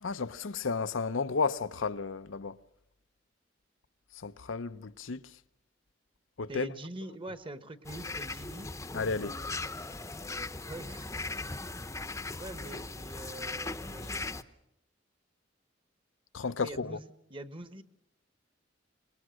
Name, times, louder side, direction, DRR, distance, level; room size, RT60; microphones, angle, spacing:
voice 1, 0.0-2.6 4.2-5.2 6.4-6.7 8.9-9.3 16.3-17.0, left 4 dB, 90° left, 0.7 m, -32 dB
voice 2, 6.5-8.7 10.7-11.1 12.4-14.2 16.6-17.8, right 1 dB, 25° right, 1.2 m, -44 dB
sound 1, 7.8-14.4, left 3 dB, 15° left, 0.8 m, -39 dB
25.5 x 21.0 x 6.4 m
head